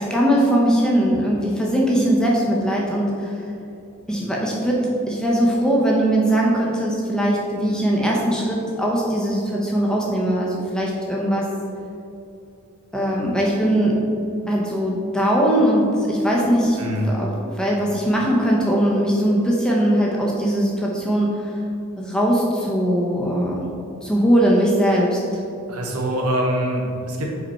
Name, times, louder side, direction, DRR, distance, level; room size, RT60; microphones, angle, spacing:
voice 1, 0.0-3.3 4.1-11.5 12.9-14.0 14.5-21.5 22.0-23.6 24.0-25.2, equal, 5° left, -4 dB, 0.7 m, -20 dB
voice 2, 16.8-17.1 25.7-27.3, equal, 85° right, -1 dB, 1.0 m, -24 dB
5.2 x 4.2 x 4.3 m, 2.7 s
head